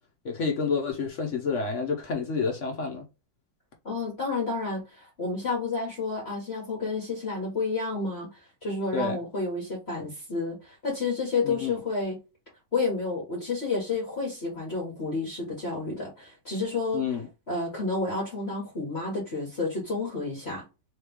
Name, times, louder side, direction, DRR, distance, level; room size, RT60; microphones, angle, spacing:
voice 1, 0.2-3.0 8.9-9.2 11.4-11.7 16.9-17.3, left 5 dB, 55° left, 0.8 m, -29 dB
voice 2, 3.8-8.3 8.6-12.2 12.7-17.0 17.5-20.6, left 3 dB, 35° left, 1.4 m, -30 dB
3.4 x 3.3 x 3.5 m
omnidirectional pair, 2.4 m